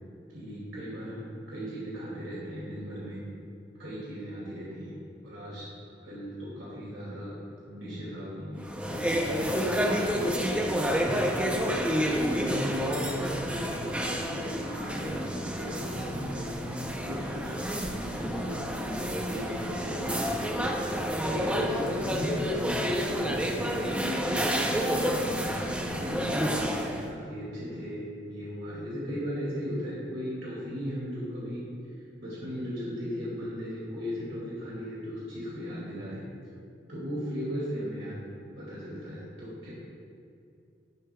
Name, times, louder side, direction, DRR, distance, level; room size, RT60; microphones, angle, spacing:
voice 1, 0.3-3.3 3.8-4.9 5.2-5.6 6.0-7.4 7.7-11.5 11.9-15.3 15.5-24.2 24.8-31.6 32.2-36.2 36.9-38.2 38.6-39.7, equal, 80° right, -8 dB, 2.3 m, -37 dB
sound 1, 8.6-27.1, equal, 5° right, 0.5 m, -29 dB
11.5 x 10.0 x 2.3 m, 2.4 s
head